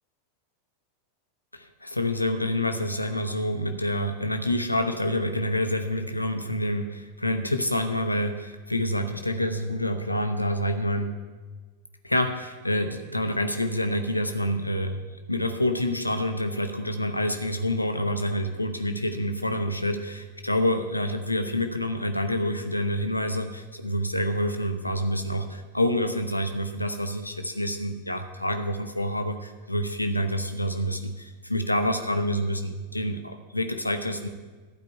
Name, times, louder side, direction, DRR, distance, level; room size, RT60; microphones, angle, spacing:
voice 1, 1.5-11.2 12.0-15.0 15.3-34.3, left 1 dB, 85° left, 7 dB, 0.7 m, -27 dB
12.0 x 5.2 x 8.7 m, 1.4 s
figure-of-eight pair, 90°, 0 cm